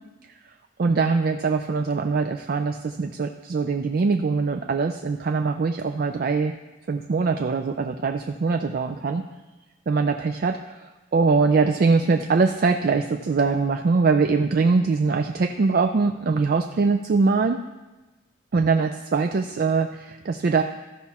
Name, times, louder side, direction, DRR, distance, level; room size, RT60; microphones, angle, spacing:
voice 1, 0.8-6.5 6.9-9.2 9.9-17.6 18.5-20.6, right 4 dB, 50° right, 7 dB, 0.3 m, -22 dB
13.0 x 5.8 x 4.2 m, 1.1 s
head